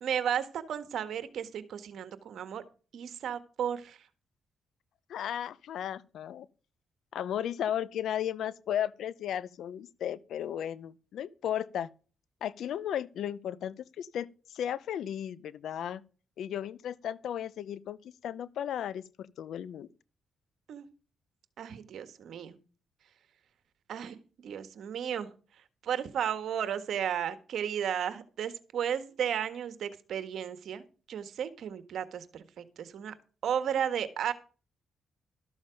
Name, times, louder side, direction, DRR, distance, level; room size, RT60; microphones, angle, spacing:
voice 1, 0.0-2.6 2.9-4.0 20.7-20.9 21.6-22.6 23.9-24.2 24.4-25.3 25.8-33.1 33.4-34.3, right 9 dB, 75° right, 1.5 m, -34 dB
voice 2, 5.1-6.5 7.1-11.9 12.4-16.0 16.4-19.9, left 10 dB, 80° left, 0.7 m, -35 dB
13.0 x 7.2 x 5.2 m
cardioid pair, 75°, 0 cm